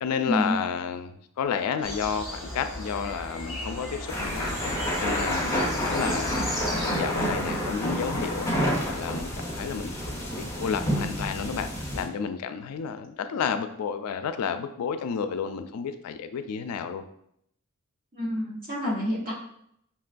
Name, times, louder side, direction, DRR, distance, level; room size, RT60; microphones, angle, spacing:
voice 1, 0.0-4.7 5.0-8.5 8.8-10.0 10.3-11.7 11.9-17.0, left 6 dB, 90° left, 9 dB, 0.3 m, -31 dB
sound 1, 1.8-7.0, left 1 dB, 5° right, 0.7 m, -36 dB
sound 2, 4.1-12.0, equal, 15° left, 1.2 m, -29 dB
voice 2, 18.1-19.3, left 1 dB, 40° right, -5 dB, 1.2 m, -28 dB
5.7 x 2.2 x 2.5 m, 0.72 s
head